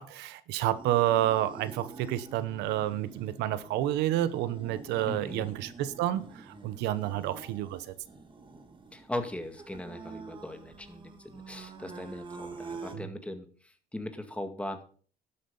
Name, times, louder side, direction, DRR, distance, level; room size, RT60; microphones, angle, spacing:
voice 1, 0.0-7.8, right 13 dB, 90° right, 14 dB, 1.0 m, -29 dB
sound 1, 0.7-13.0, right 3 dB, 30° right, 2.3 m, -46 dB
voice 2, 5.1-5.5 8.9-14.8, left 1 dB, 5° left, 7 dB, 2.0 m, -39 dB
12.0 x 8.6 x 5.5 m, 0.43 s
cardioid pair, 110°, 17 cm